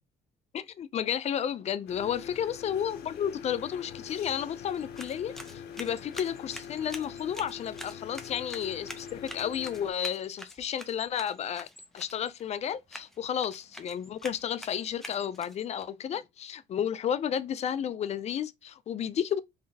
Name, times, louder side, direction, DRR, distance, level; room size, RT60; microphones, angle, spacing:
voice 1, 0.5-11.7 11.9-19.4, left 9 dB, 40° left, 0.4 m, -32 dB
sound 1, 1.9-9.9, left 8 dB, 70° left, 0.7 m, -44 dB
sound 2, 4.7-15.8, equal, ahead, 0.7 m, -47 dB
3.7 x 3.1 x 2.7 m
cardioid pair, 110°, 17 cm